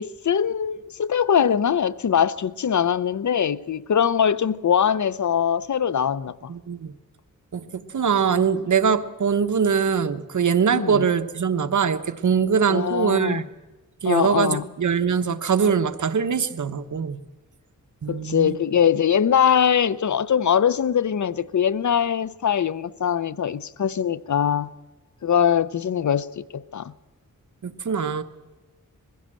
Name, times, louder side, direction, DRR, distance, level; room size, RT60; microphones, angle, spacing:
voice 1, 0.0-6.3 10.8-11.1 12.7-13.4 14.1-14.6 18.1-24.7 25.2-26.9, left 8 dB, 65° left, 0.7 m, -22 dB
voice 2, 6.5-6.9 7.5-13.5 14.0-17.2 18.0-18.6 27.6-28.2, right 6 dB, 65° right, 1.2 m, -22 dB
21.5 x 16.0 x 7.6 m
wide cardioid pair, 75°, 32 cm